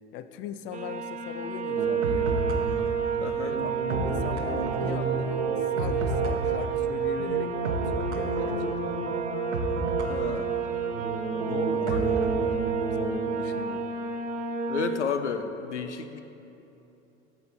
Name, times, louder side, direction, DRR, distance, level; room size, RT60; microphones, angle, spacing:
voice 1, 0.1-2.4 3.4-5.4 5.7-7.5 7.9-9.1 11.4-13.9, left 9 dB, 35° left, 11 dB, 0.4 m, -39 dB
sound 1, 0.7-15.0, right 7 dB, 20° right, 0.6 m, -30 dB
sound 2, 1.8-13.6, right 2 dB, 75° right, 0.9 m, -31 dB
voice 2, 3.2-3.6 10.1-10.6 11.9-12.1 14.7-16.2, left 6 dB, 85° left, 9 dB, 0.5 m, -32 dB
10.5 x 7.1 x 3.4 m, 3.0 s
figure-of-eight pair, 80°, 35 cm